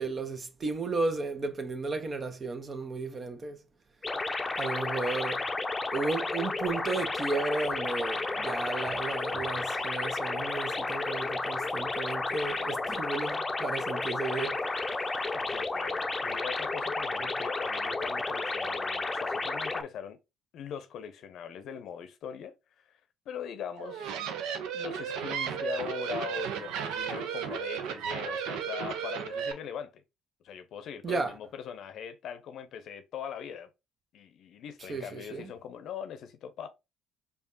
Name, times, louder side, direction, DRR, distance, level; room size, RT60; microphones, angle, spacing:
voice 1, 0.0-3.6 4.6-5.4 5.9-14.6 31.0-31.3 34.9-35.5, right 3 dB, 40° right, 0.8 m, -34 dB
sound 1, 4.0-19.8, left 3 dB, 25° left, 0.6 m, -32 dB
voice 2, 15.3-20.2 20.5-23.0 23.3-24.2 24.7-30.0 30.4-33.7 34.1-36.7, left 8 dB, 65° left, 0.6 m, -41 dB
sound 2, 23.8-29.5, right 7 dB, 75° right, 0.5 m, -34 dB
5.0 x 2.4 x 2.6 m
hypercardioid pair, 55°, 0 cm